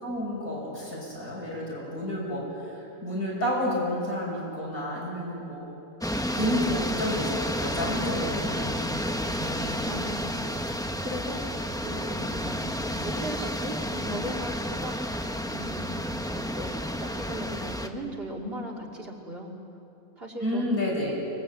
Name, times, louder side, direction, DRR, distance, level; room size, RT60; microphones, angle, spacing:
voice 1, 0.0-5.7 6.3-9.8 20.4-21.1, left 1 dB, 85° left, -3 dB, 7.2 m, -31 dB
sound 1, 6.0-17.9, equal, 5° left, 0.8 m, -31 dB
voice 2, 8.0-8.4 9.8-10.5 11.0-11.5 11.8-15.0 15.5-19.6 20.2-20.9, equal, 45° right, -1 dB, 2.9 m, -38 dB
24.5 x 20.0 x 8.2 m, 2.8 s
omnidirectional pair, 1.5 m